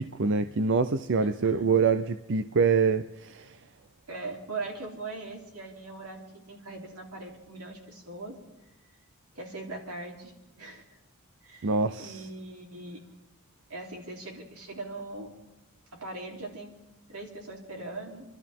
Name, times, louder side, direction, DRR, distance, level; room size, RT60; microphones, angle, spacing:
voice 1, 0.0-3.6 11.6-12.2, right 5 dB, 55° right, 11 dB, 0.5 m, -25 dB
voice 2, 1.1-1.7 4.1-8.4 9.4-10.3 10.6-10.8 11.4-11.7 12.0-13.0 13.7-15.3 15.9-16.7 17.1-18.2, right 2 dB, 90° right, 0 dB, 3.7 m, -40 dB
28.5 x 12.5 x 3.7 m, 0.98 s
head